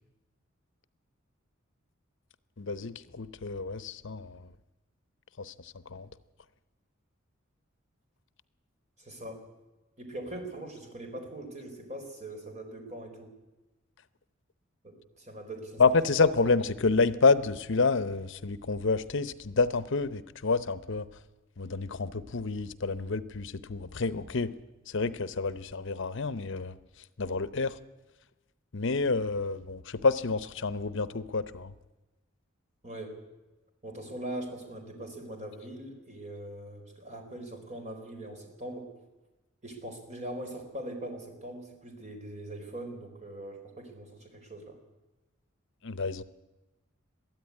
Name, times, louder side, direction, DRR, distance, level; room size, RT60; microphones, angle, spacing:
voice 1, 2.6-4.5 5.4-6.1 15.8-21.1 21.6-24.6 24.9-26.8 27.2-27.8 28.7-31.7 45.8-46.2, left 4 dB, 65° left, 15 dB, 0.8 m, -28 dB
voice 2, 9.0-9.5 10.0-13.3 14.8-16.1 16.4-16.5 32.8-33.2 33.8-38.9 39.6-44.8, right 1 dB, 35° right, 4 dB, 4.2 m, -41 dB
22.0 x 13.5 x 9.6 m, 1.1 s
head